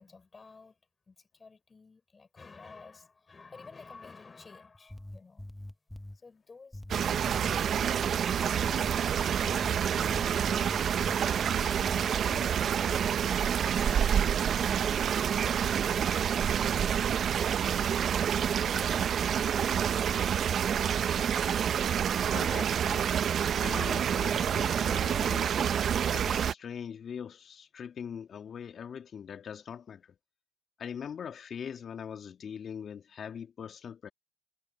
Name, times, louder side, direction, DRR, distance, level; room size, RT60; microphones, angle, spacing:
voice 1, 0.0-5.5 6.1-6.8 7.4-15.0 15.9-17.7 18.0-21.0, left 4 dB, 30° left, 5.9 m, -54 dB
sound 1, 4.7-6.2 6.7-8.1 8.6-9.0 9.4-11.6 11.8-12.5, left 1 dB, 5° left, 1.3 m, -42 dB
sound 2, 6.9-26.5, right 8 dB, 55° right, 0.7 m, -28 dB
voice 2, 22.3-23.1 23.6-25.8 26.1-30.2 30.8-34.1, left 7 dB, 50° left, 2.3 m, -41 dB
hypercardioid pair, 65°, 0 cm